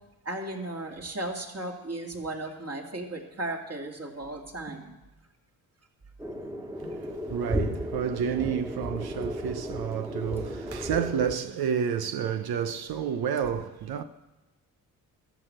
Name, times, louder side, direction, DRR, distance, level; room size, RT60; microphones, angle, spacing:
voice 1, 0.2-4.9 6.8-7.0 9.0-9.4, right 2 dB, 40° right, 2.4 m, -36 dB
sound 1, 6.2-11.4, equal, 10° right, 1.6 m, -34 dB
voice 2, 6.8-14.0, right 8 dB, 70° right, 0.7 m, -30 dB
13.0 x 6.1 x 7.8 m
supercardioid pair, 55°, 39 cm